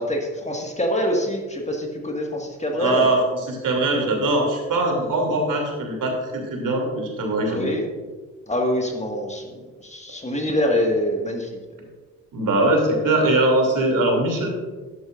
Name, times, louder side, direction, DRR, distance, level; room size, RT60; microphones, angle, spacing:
voice 1, 0.0-3.1 7.5-7.8 8.5-11.5, left 1 dB, 15° left, 1 dB, 1.7 m, -25 dB
voice 2, 2.8-3.2 3.5-7.7 12.3-14.5, right 2 dB, 55° right, 1 dB, 2.9 m, -21 dB
12.0 x 10.5 x 2.5 m, 1.4 s
hypercardioid pair, 55°, 39 cm